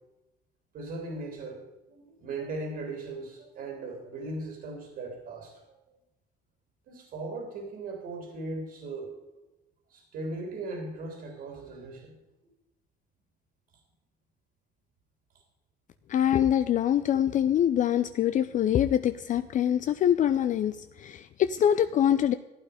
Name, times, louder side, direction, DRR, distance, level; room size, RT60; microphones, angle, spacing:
voice 1, 0.7-1.6 1.9-5.7 6.9-9.2 9.9-12.1, right 2 dB, 65° right, 2 dB, 3.1 m, -38 dB
voice 2, 16.1-22.3, left 10 dB, 50° left, 11 dB, 0.5 m, -24 dB
15.0 x 9.1 x 5.1 m, 0.99 s
cardioid pair, 110°, 17 cm